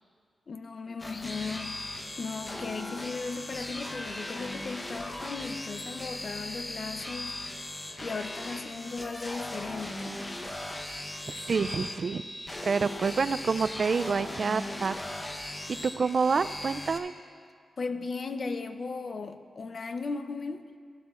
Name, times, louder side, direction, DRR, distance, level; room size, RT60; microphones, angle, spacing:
voice 1, 0.5-1.8 2.2-7.4 8.0-10.2 17.8-20.7, left 4 dB, 50° left, 9 dB, 0.6 m, -36 dB
sound 1, 1.0-17.0, left 1 dB, 20° left, 0.9 m, -38 dB
voice 2, 11.5-12.2 12.6-15.2 15.7-17.1, right 5 dB, 55° right, 14 dB, 0.3 m, -28 dB
16.0 x 12.0 x 2.5 m, 2.1 s
wide cardioid pair, 95°, 0 cm